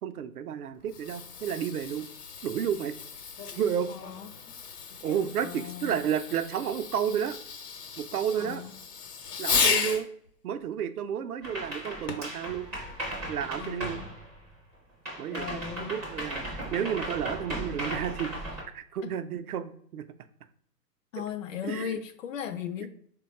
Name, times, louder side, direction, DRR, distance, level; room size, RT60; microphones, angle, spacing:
voice 1, 0.0-2.1 2.4-2.9 3.6-3.9 5.0-7.4 8.0-8.6 9.4-10.1 10.4-12.7 13.3-14.0 15.2-18.3 18.7-20.0 21.6-22.0, right 8 dB, 65° right, 10 dB, 0.5 m, -31 dB
Fireworks, 0.7-10.1 12.1-12.4 13.1-13.2, left 6 dB, 70° left, 0.9 m, -34 dB
voice 2, 3.9-4.3 5.0-6.0 8.4-8.7 13.6-14.1 15.3-15.9 21.1-22.9, left 9 dB, 55° left, 7 dB, 0.5 m, -37 dB
irish dancing, 11.4-14.7 15.1-18.6, right 1 dB, 5° right, 0.4 m, -37 dB
3.5 x 2.2 x 4.0 m, 0.64 s
figure-of-eight pair, 120°, 48 cm